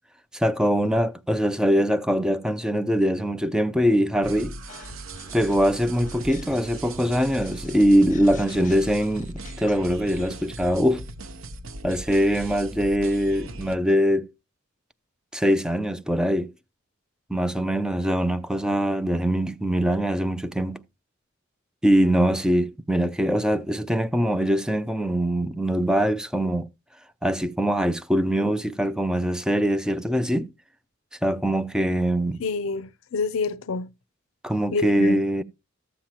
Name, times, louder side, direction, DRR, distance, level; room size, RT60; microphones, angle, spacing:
voice 1, 0.3-4.5 5.3-11.1 11.8-14.3 15.3-16.5 17.3-20.8 21.8-26.7 27.2-30.5 31.2-32.4 34.4-35.4, equal, 5° right, 0.4 m, -23 dB
sound 1, 4.2-13.8, right 2 dB, 75° right, 0.9 m, -39 dB
sound 2, 4.7-9.8, left 3 dB, 40° left, 1.3 m, -46 dB
voice 2, 32.4-33.9 34.7-35.2, left 4 dB, 70° left, 0.5 m, -28 dB
13.5 x 7.5 x 2.9 m
head